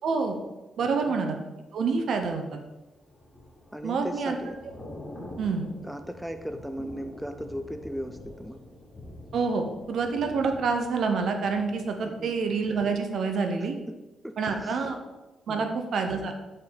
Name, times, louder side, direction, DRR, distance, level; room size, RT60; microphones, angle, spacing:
voice 1, 0.0-0.4 0.8-1.4 1.7-2.4 3.8-4.4 5.4-5.7 9.3-13.8 14.4-15.0 15.5-16.3, right 4 dB, 65° right, 5 dB, 0.9 m, -27 dB
voice 2, 0.8-1.2 1.9-2.0 3.7-4.6 5.8-8.6 12.0-12.3 13.9-14.0 14.2-14.8 15.5-15.8, equal, ahead, 7 dB, 0.4 m, -37 dB
Thunder / Rain, 2.9-12.8 13.1-13.4, left 1 dB, 20° left, 1.9 m, -46 dB
6.9 x 5.5 x 4.1 m, 1.1 s
cardioid pair, 130°, 0 cm